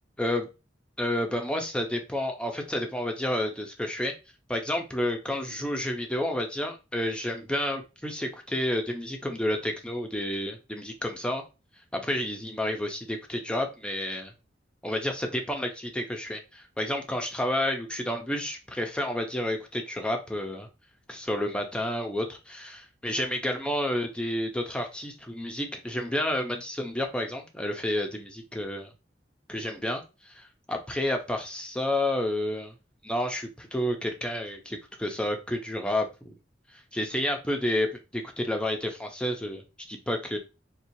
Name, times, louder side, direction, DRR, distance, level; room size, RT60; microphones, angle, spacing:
voice 1, 1.0-4.1 4.5-11.4 11.9-14.3 14.8-20.7 21.1-28.9 29.5-32.7 33.0-36.4 36.9-39.6 39.9-40.4, left 1 dB, 5° left, 3 dB, 0.6 m, -30 dB
4.4 x 2.4 x 2.7 m, 0.28 s
head